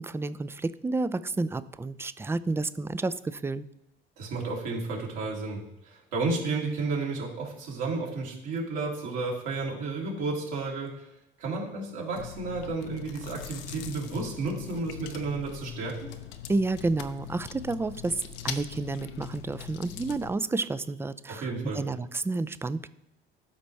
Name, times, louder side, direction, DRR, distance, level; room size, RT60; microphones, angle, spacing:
voice 1, 0.0-3.6 16.5-22.9, right 3 dB, 10° right, 15 dB, 0.4 m, -30 dB
voice 2, 4.2-11.1 11.4-16.1 21.3-21.8, right 3 dB, 65° right, -3 dB, 2.8 m, -32 dB
Chewing mastication, 12.1-20.3, left 9 dB, 70° left, 0.8 m, -41 dB
12.5 x 5.1 x 3.3 m, 0.86 s
figure-of-eight pair, 50°, 30 cm